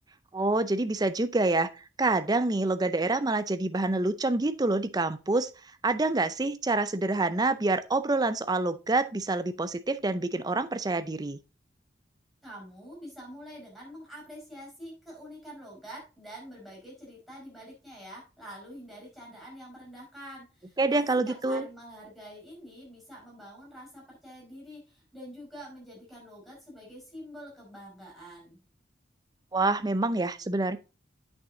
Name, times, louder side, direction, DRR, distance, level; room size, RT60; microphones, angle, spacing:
voice 1, 0.3-5.5 5.8-11.4 20.8-21.7 29.5-30.8, right 2 dB, 20° right, 0.5 m, -27 dB
voice 2, 12.4-28.6, equal, ahead, 5.3 m, -46 dB
8.7 x 6.2 x 3.8 m
head